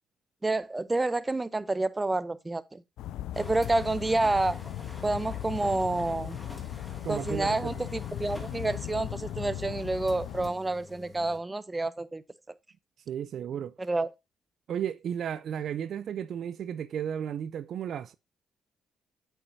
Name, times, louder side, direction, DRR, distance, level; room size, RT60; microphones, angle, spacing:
voice 1, 0.4-2.8 3.4-4.6 5.0-6.4 7.1-12.2 13.8-14.1, right 2 dB, 20° right, 0.6 m, -29 dB
sound 1, 3.0-10.5, left 12 dB, 75° left, 0.3 m, -38 dB
sound 2, 3.3-11.4, left 2 dB, 10° left, 1.6 m, -47 dB
voice 2, 7.0-7.7 13.1-13.7 14.7-18.1, right 9 dB, 65° right, 0.4 m, -34 dB
8.4 x 5.7 x 2.6 m
hypercardioid pair, 55°, 0 cm